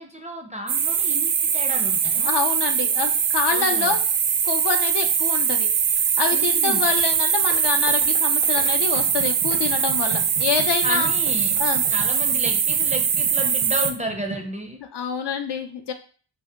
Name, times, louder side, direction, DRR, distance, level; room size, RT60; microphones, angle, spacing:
voice 1, 0.0-2.3 3.5-4.0 6.3-6.9 10.8-11.6 11.9-14.8, equal, 15° right, 2 dB, 0.4 m, -32 dB
sound 1, 0.7-13.9, right 7 dB, 65° right, 0.5 m, -22 dB
voice 2, 2.2-4.0 4.5-11.1 11.6-11.8 14.9-15.9, left 6 dB, 60° left, 5 dB, 0.5 m, -27 dB
sound 2, 6.9-11.9 12.2-12.3, left 3 dB, 85° left, 0.8 m, -41 dB
sound 3, 8.8-14.5, right 4 dB, 85° right, 0.9 m, -40 dB
2.7 x 2.1 x 3.4 m, 0.41 s
cardioid pair, 50°, 48 cm